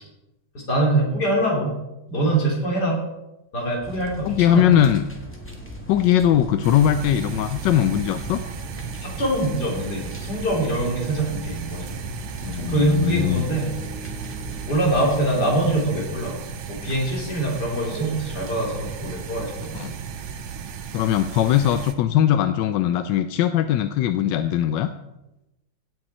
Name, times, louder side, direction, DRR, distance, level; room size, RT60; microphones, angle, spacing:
voice 1, 0.5-1.8 2.1-3.0 3.5-4.8 9.0-11.9 12.5-13.7 14.6-19.8, right 1 dB, 50° left, -2 dB, 3.8 m, -24 dB
sound 1, 3.8-15.2, equal, 5° left, 1.6 m, -39 dB
voice 2, 4.2-5.0 5.9-8.4 12.4-13.5 19.7-20.0 20.9-24.9, left 10 dB, 75° left, 10 dB, 1.2 m, -20 dB
sound 2, 6.6-21.9, right 7 dB, 85° right, 1.8 m, -35 dB
Bass guitar, 13.5-17.6, right 3 dB, 50° right, 1.7 m, -45 dB
16.5 x 8.1 x 4.3 m, 0.95 s
omnidirectional pair, 2.2 m